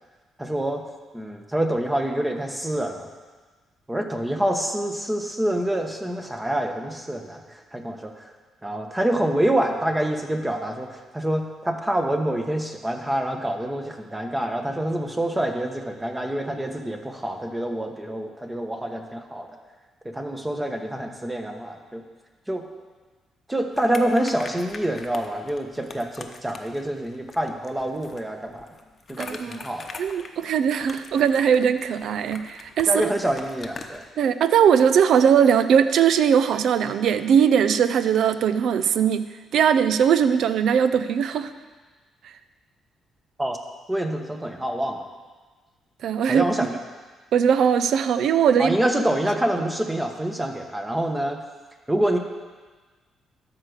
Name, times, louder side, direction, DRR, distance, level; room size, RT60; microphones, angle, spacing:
voice 1, 0.4-0.8 1.1-3.1 3.9-8.3 8.6-19.5 20.1-22.0 22.5-22.6 23.5-28.7 29.1-29.9 32.9-34.0 43.4-43.6 43.9-45.0 46.3-46.8 48.6-51.4 51.9-52.2, right 1 dB, 10° right, 4 dB, 1.2 m, -26 dB
sound 1, 23.7-34.1, left 4 dB, 35° left, 0.9 m, -43 dB
voice 2, 29.2-29.6 30.0-33.1 34.2-39.3 39.5-41.5 46.0-46.4 47.3-48.8, right 8 dB, 70° right, 12 dB, 0.5 m, -20 dB
13.0 x 4.9 x 6.5 m, 1.4 s
cardioid pair, 90°, 0 cm